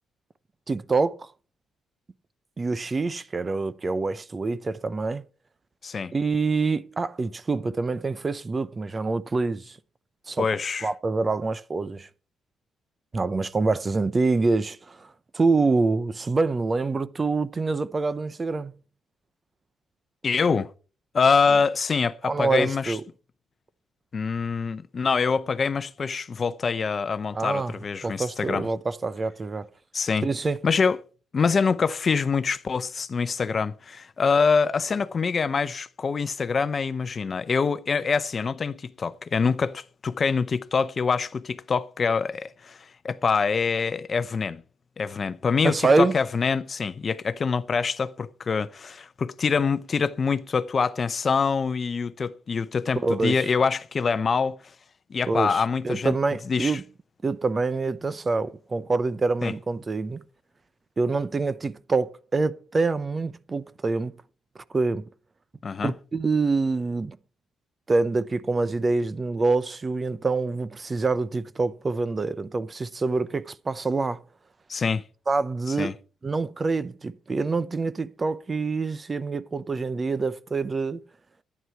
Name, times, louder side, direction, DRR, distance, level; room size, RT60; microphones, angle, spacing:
voice 1, 0.7-1.3 2.6-5.2 6.1-9.8 10.3-10.5 10.8-12.1 13.1-18.8 22.3-23.0 27.3-27.7 28.0-29.7 30.2-30.6 45.6-46.1 53.0-53.5 55.3-56.8 57.2-60.2 61.0-64.2 64.7-65.1 65.8-67.2 67.9-74.2 75.3-81.0, right 3 dB, 30° right, 0.7 m, -26 dB
voice 2, 10.4-10.9 20.2-20.7 21.1-23.0 24.1-28.7 29.9-30.3 30.6-31.0 31.3-44.6 45.0-54.6 55.1-56.1 56.5-56.8 59.4-59.5 65.6-65.9 74.7-75.0 75.8-75.9, left 5 dB, 40° left, 0.7 m, -25 dB
11.0 x 9.5 x 4.6 m
cardioid pair, 90°, 0 cm